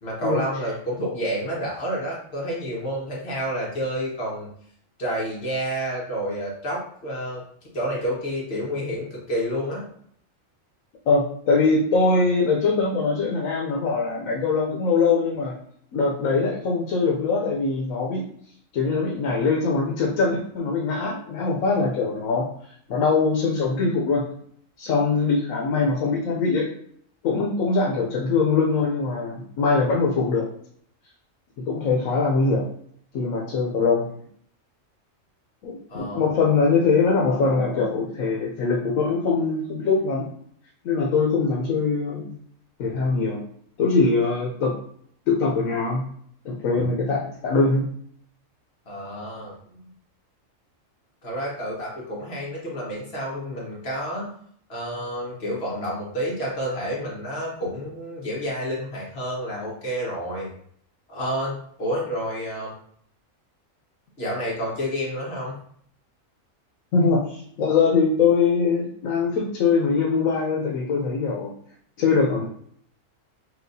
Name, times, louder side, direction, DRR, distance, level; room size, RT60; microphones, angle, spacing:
voice 1, 0.0-4.5 5.0-7.4 7.7-9.8 35.9-36.3 48.9-49.5 51.2-54.3 54.7-60.5 61.1-62.7 64.2-65.6, equal, 50° left, -5 dB, 1.5 m, -29 dB
voice 2, 11.1-15.5 15.9-18.3 18.7-22.5 22.9-24.2 24.8-26.7 27.2-30.5 31.6-32.7 33.1-34.1 35.6-40.2 40.8-42.3 42.8-43.4 43.8-44.7 45.3-46.0 46.4-47.8 66.9-71.5 72.0-72.5, left 4 dB, 85° left, -1 dB, 1.1 m, -22 dB
6.0 x 2.4 x 2.6 m, 0.64 s
omnidirectional pair, 1.4 m